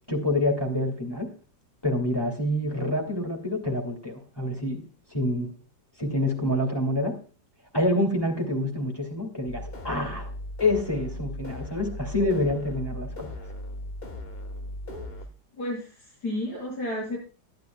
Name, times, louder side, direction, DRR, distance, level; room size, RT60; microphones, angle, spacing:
voice 1, 0.1-1.3 1.8-4.8 5.1-5.5 6.0-7.2 7.7-10.3 10.6-13.3, left 1 dB, 15° left, 2 dB, 2.5 m, -27 dB
sound 1, 9.5-15.3, left 1 dB, 35° left, 1.7 m, -38 dB
voice 2, 15.5-17.2, left 1 dB, 60° left, -6 dB, 8.3 m, -32 dB
21.0 x 11.5 x 2.3 m, 0.36 s
omnidirectional pair, 1.9 m